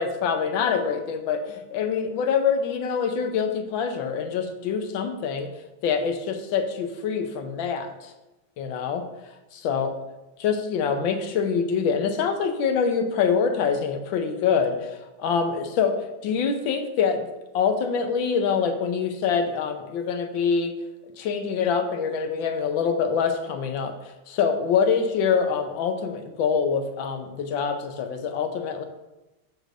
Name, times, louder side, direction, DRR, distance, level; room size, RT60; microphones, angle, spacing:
voice 1, 0.0-5.5 5.8-8.1 8.6-9.0 9.6-9.9 10.4-17.3 17.5-20.7 21.2-28.8, left 6 dB, 80° left, 6 dB, 1.5 m, -25 dB
13.0 x 4.9 x 2.5 m, 0.98 s
omnidirectional pair, 2.2 m